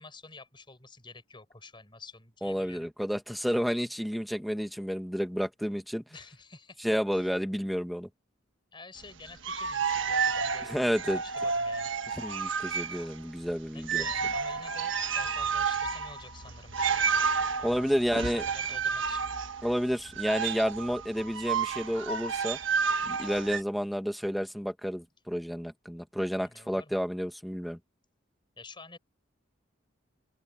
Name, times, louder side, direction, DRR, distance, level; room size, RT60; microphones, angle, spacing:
voice 1, 0.0-2.9 6.1-7.4 8.7-10.7 11.1-11.9 12.4-12.6 13.7-19.3 26.4-27.0 28.6-29.0, left 3 dB, 25° left, 5.8 m, -50 dB
voice 2, 2.4-6.0 6.8-8.1 10.6-11.2 12.2-14.1 17.6-18.5 19.6-22.6 23.0-27.8, equal, ahead, 1.5 m, -30 dB
sound 1, 9.3-13.2 13.5-13.6 13.8-23.6, right 6 dB, 80° right, 1.4 m, -31 dB
open air
head